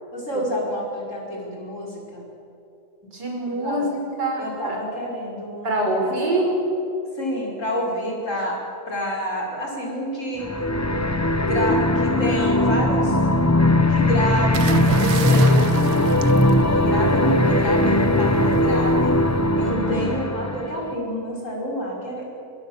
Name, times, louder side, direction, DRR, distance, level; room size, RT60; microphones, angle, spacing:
voice 1, 0.1-2.2 3.6-3.8 4.4-6.5 7.1-8.6 8.9-10.5 11.4-13.2 13.7-15.6 16.7-19.2 19.6-22.4, equal, 45° left, -2 dB, 6.1 m, -28 dB
voice 2, 3.1-4.8 5.6-6.5 17.8-18.1 19.6-20.1, right 2 dB, 85° right, 0 dB, 5.8 m, -25 dB
sound 1, 10.4-20.9, left 1 dB, 20° left, 0.5 m, -19 dB
sound 2, 14.5-17.3 18.5-18.8, right 9 dB, 70° right, 1.3 m, -31 dB
25.0 x 22.0 x 7.3 m, 2.9 s
omnidirectional pair, 1.8 m